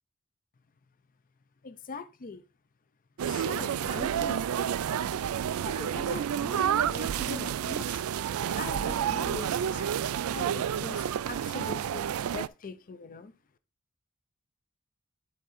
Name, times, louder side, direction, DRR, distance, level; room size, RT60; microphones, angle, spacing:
voice 1, 1.6-2.4 3.3-4.8 5.6-8.0 8.6-9.9 10.3-13.3, left 4 dB, 40° left, 0.6 m, -42 dB
sound 1, 3.2-12.5, right 9 dB, 80° right, 0.3 m, -30 dB
10.5 x 3.7 x 4.2 m
head